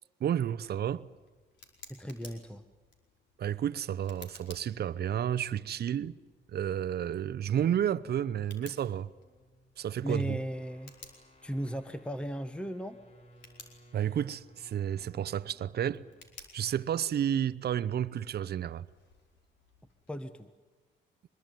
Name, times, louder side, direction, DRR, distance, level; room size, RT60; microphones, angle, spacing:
voice 1, 0.2-1.1 3.4-6.2 6.5-9.1 9.8-10.4 13.9-16.0 16.5-18.9, right 9 dB, 55° right, 0.7 m, -31 dB
Tick, 0.6-20.3, left 4 dB, 65° left, 4.9 m, -58 dB
voice 2, 1.9-2.6 10.0-10.9 11.4-13.0 20.1-20.5, equal, 5° left, 1.2 m, -36 dB
sound 1, 7.9-16.4, equal, 35° left, 3.3 m, -60 dB
24.5 x 21.5 x 9.2 m
cardioid pair, 90°, 20 cm